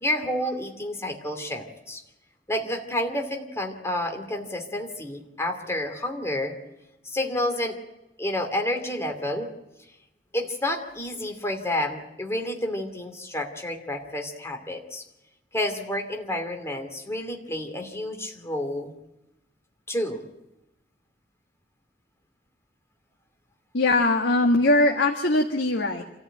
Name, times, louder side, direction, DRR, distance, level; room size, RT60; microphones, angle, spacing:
voice 1, 0.0-2.0 2.5-6.8 7.0-7.8 8.2-9.5 10.3-15.0 15.5-18.9 19.9-20.2, left 1 dB, 15° left, 4 dB, 2.7 m, -30 dB
voice 2, 23.7-26.0, left 2 dB, 85° left, 2 dB, 1.6 m, -21 dB
27.0 x 14.0 x 9.1 m, 0.96 s
head